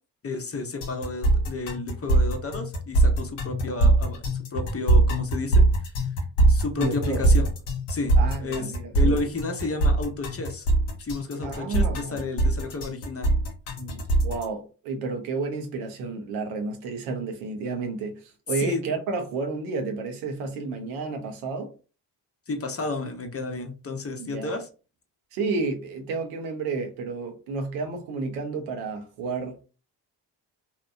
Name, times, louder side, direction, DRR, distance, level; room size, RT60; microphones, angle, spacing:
voice 1, 0.2-4.2 4.5-5.6 6.5-7.5 7.9-10.7 11.0-13.3 18.6-18.8 22.5-24.7, left 3 dB, 30° left, 0.7 m, -31 dB
sound 1, 0.8-14.4, right 2 dB, 80° left, 0.7 m, -22 dB
voice 2, 6.8-7.2 8.2-9.2 11.4-12.2 13.8-21.7 24.2-24.5 25.3-29.7, right 4 dB, 85° right, 0.7 m, -31 dB
2.8 x 2.1 x 2.5 m
hypercardioid pair, 40°, 49 cm